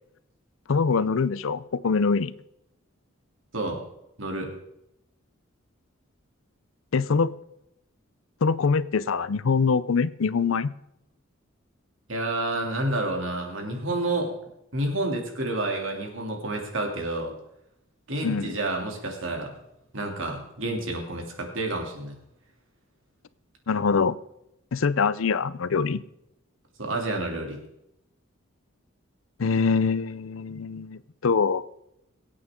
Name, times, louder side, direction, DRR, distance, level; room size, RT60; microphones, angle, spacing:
voice 1, 0.7-2.3 6.9-7.3 8.4-10.7 18.2-18.5 23.7-24.2 24.7-26.0 29.4-31.6, left 5 dB, 75° left, 18 dB, 0.5 m, -24 dB
voice 2, 4.2-4.5 12.1-14.3 14.7-17.3 18.1-19.5 19.9-22.2 26.8-27.6, right 2 dB, 65° right, 2 dB, 2.7 m, -29 dB
23.0 x 8.6 x 3.7 m, 0.83 s
head